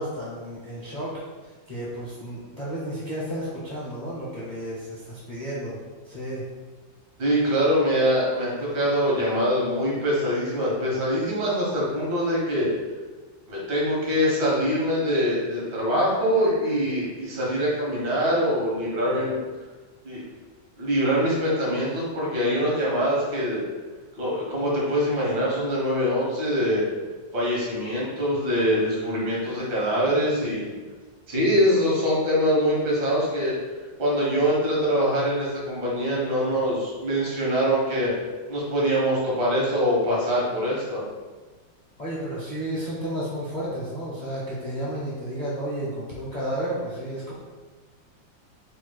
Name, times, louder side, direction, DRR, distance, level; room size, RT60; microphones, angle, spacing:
voice 1, 0.0-5.8 6.0-6.4 42.0-47.3, right 1 dB, 45° left, -7 dB, 0.5 m, -32 dB
voice 2, 7.2-12.7 13.5-19.4 20.0-20.2 20.8-23.6 24.2-26.8 27.3-30.7 31.3-33.5 34.0-38.1 38.5-41.0, equal, 85° right, -5 dB, 2.1 m, -24 dB
4.2 x 2.3 x 4.6 m, 1.3 s
omnidirectional pair, 2.0 m